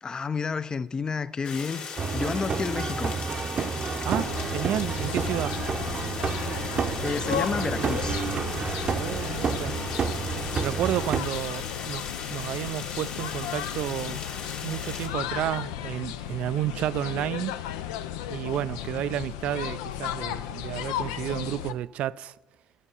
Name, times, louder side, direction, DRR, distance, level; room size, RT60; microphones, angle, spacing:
voice 1, 0.0-1.8 2.1-3.2 7.0-8.3, left 5 dB, 35° left, 0.5 m, -30 dB
sound 1, 1.4-15.1, left 5 dB, 65° left, 2.0 m, -38 dB
sound 2, 2.0-11.2, right 5 dB, 45° right, 0.7 m, -30 dB
sound 3, 4.0-21.7, left 11 dB, 90° left, 0.4 m, -35 dB
voice 2, 4.0-5.6 8.9-9.8 10.6-12.0 12.3-14.2 14.6-17.5 18.3-22.3, right 12 dB, 65° right, 0.3 m, -31 dB
11.0 x 6.8 x 5.5 m
supercardioid pair, 65°, 2 cm